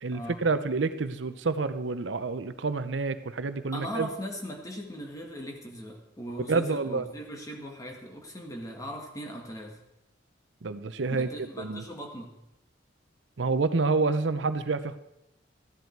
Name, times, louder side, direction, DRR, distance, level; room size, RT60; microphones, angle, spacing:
voice 1, 0.0-4.1 6.5-7.0 10.6-11.3 11.6-11.8 13.4-15.0, right 3 dB, 80° right, 12 dB, 0.7 m, -28 dB
voice 2, 3.7-9.8 11.1-12.3, equal, 20° left, 2 dB, 1.8 m, -39 dB
14.0 x 10.5 x 4.6 m, 0.89 s
head